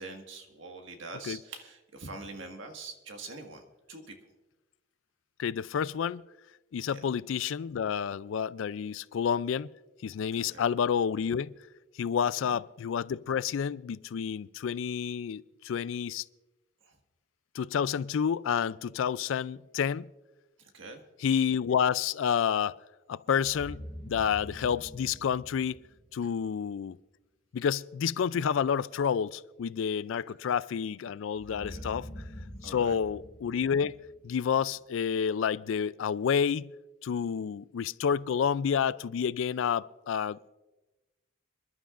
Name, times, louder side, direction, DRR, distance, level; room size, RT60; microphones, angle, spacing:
voice 1, 0.0-3.6 3.9-4.1 10.4-10.6 12.4-12.6 16.8-16.9 20.7-21.0 31.5-31.8 32.6-33.0, right 3 dB, 65° right, 1.7 m, -44 dB
voice 2, 5.4-6.2 6.7-9.7 10.0-11.5 12.0-16.2 17.5-20.1 21.2-22.8 23.1-25.8 26.1-27.0 27.5-32.1 32.6-36.7 37.0-40.5, left 7 dB, 70° left, 0.3 m, -29 dB
sound 1, 23.4-26.4 31.3-34.6, equal, 10° left, 5.5 m, -45 dB
27.5 x 11.5 x 2.5 m
head